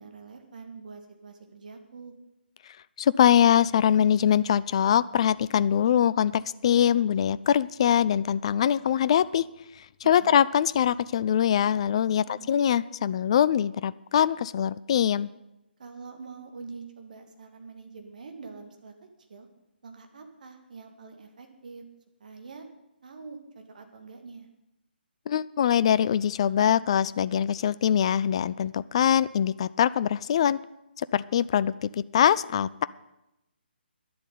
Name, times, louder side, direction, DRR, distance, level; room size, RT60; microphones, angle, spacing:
voice 1, 0.0-2.1 10.2-10.5 12.3-12.5 15.8-18.9 19.3-19.5 19.8-21.8 22.2-22.7 23.0-24.5, right 4 dB, 50° right, 5 dB, 2.0 m, -45 dB
voice 2, 3.0-9.5 10.1-15.3 25.3-30.6 31.0-32.8, left 9 dB, 35° left, 17 dB, 0.4 m, -23 dB
10.5 x 7.7 x 9.4 m, 0.90 s
figure-of-eight pair, 140°, 6 cm